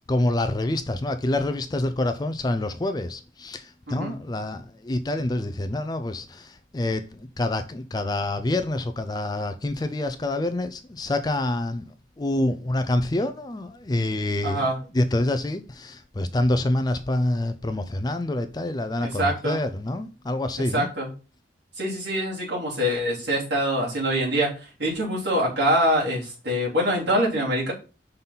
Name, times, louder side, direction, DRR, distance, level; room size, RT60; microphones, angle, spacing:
voice 1, 0.1-11.8 12.2-14.6 14.9-20.9, left 1 dB, 20° left, 0.4 m, -27 dB
voice 2, 14.4-14.8 19.0-19.6 20.6-21.1 21.7-27.7, equal, 65° right, 3.4 m, -25 dB
5.6 x 4.0 x 5.4 m
head